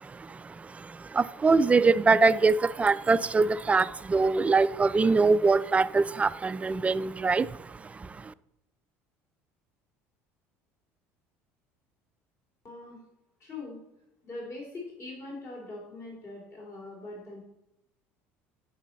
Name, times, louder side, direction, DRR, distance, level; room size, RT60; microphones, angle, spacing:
voice 1, 0.0-8.3, right 4 dB, 20° right, 0.4 m, -24 dB
voice 2, 12.6-13.0 13.4-13.8 14.2-17.4, left 2 dB, 45° left, 3.1 m, -42 dB
9.0 x 5.6 x 4.1 m
hypercardioid pair, 75°, 7 cm